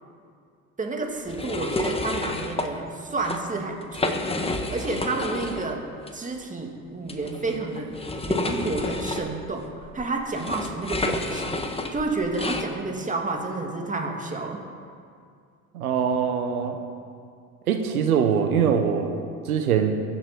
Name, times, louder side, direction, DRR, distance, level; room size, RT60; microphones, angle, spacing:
voice 1, 0.8-4.2 4.5-5.8 6.1-7.9 8.2-14.6, right 3 dB, 20° right, 1 dB, 2.5 m, -30 dB
sound 1, 1.3-2.7 3.1-3.4 3.8-5.7 6.0-6.1 7.1-12.7, left 2 dB, 15° left, 1.4 m, -30 dB
voice 2, 15.7-16.8 17.7-19.1 19.5-19.9, right 7 dB, 90° right, 5 dB, 1.2 m, -22 dB
22.0 x 7.3 x 5.2 m, 2.3 s
hypercardioid pair, 80°, 42 cm